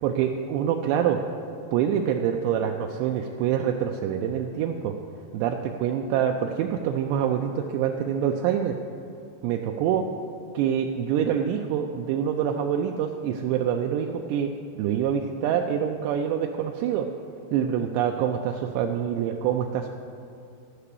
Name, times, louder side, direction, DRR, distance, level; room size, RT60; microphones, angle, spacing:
voice 1, 0.0-1.2 1.7-4.9 5.3-8.8 9.4-10.1 10.5-17.1 17.5-19.9, right 9 dB, 80° right, 3 dB, 2.6 m, -26 dB
13.5 x 5.8 x 8.3 m, 2.5 s
omnidirectional pair, 5.2 m